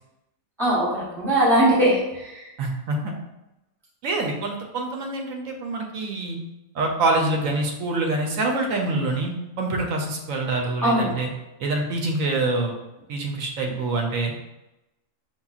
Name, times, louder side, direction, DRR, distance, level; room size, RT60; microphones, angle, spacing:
voice 1, 0.6-2.5 10.8-11.1 13.7-13.8, right 1 dB, ahead, -6 dB, 0.7 m, -21 dB
voice 2, 2.6-3.1 4.0-6.4 6.7-11.3 11.6-12.7 13.1-14.3, right 2 dB, 80° right, 2 dB, 1.0 m, -25 dB
5.3 x 2.4 x 2.3 m, 0.95 s
omnidirectional pair, 1.4 m